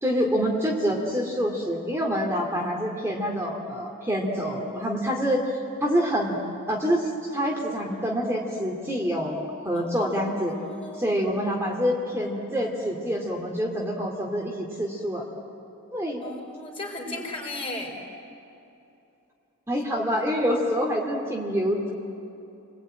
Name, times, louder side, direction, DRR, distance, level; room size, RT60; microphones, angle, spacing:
voice 1, 0.0-6.4 6.7-10.6 11.0-15.2 15.9-16.2 19.7-21.9, equal, 10° right, -1 dB, 2.4 m, -26 dB
voice 2, 9.7-11.2 16.2-18.0, left 2 dB, 25° left, 0 dB, 4.5 m, -36 dB
29.5 x 21.5 x 9.0 m, 2.8 s
head